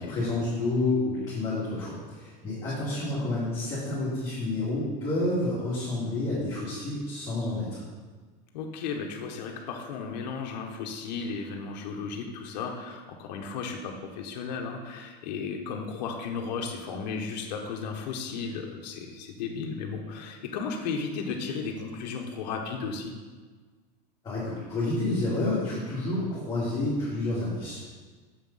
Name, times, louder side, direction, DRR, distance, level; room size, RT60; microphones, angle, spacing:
voice 1, 0.0-7.8 24.2-27.9, left 2 dB, 20° left, -11 dB, 2.7 m, -29 dB
voice 2, 2.8-3.3 8.5-23.1, left 5 dB, 85° left, 2 dB, 1.3 m, -35 dB
7.5 x 7.3 x 5.6 m, 1.4 s
supercardioid pair, 170°, 21 cm